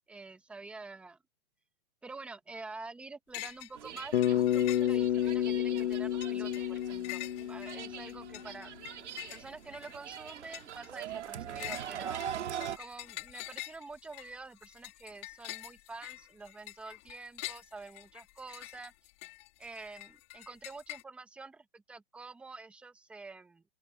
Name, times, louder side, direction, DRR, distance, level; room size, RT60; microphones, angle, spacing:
voice 1, 0.1-1.2 2.0-7.2 7.5-8.8 9.3-12.2 12.8-18.9 19.6-23.6, right 3 dB, 5° right, 1.1 m, -47 dB
sound 1, 3.3-3.7 4.0-5.4 5.8-21.0, left 22 dB, 25° left, 2.5 m, -46 dB
sound 2, 3.7-12.8, right 9 dB, 90° right, 2.0 m, -43 dB
Bass guitar, 4.1-8.5, left 11 dB, 65° left, 1.4 m, -30 dB
open air
hypercardioid pair, 175°, 34 cm